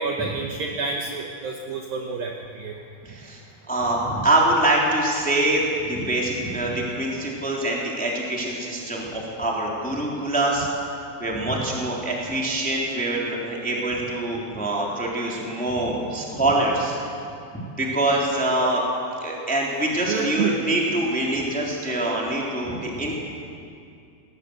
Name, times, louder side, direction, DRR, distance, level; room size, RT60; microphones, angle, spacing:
voice 1, 0.0-2.8 18.6-18.7 20.1-20.6, right 5 dB, 70° right, 1 dB, 2.3 m, -28 dB
voice 2, 3.0-3.4 3.7-10.7 11.2-17.0 17.8-18.8 19.2-23.2, right 1 dB, ahead, -3 dB, 2.2 m, -24 dB
19.5 x 18.0 x 8.0 m, 2.5 s
omnidirectional pair, 5.5 m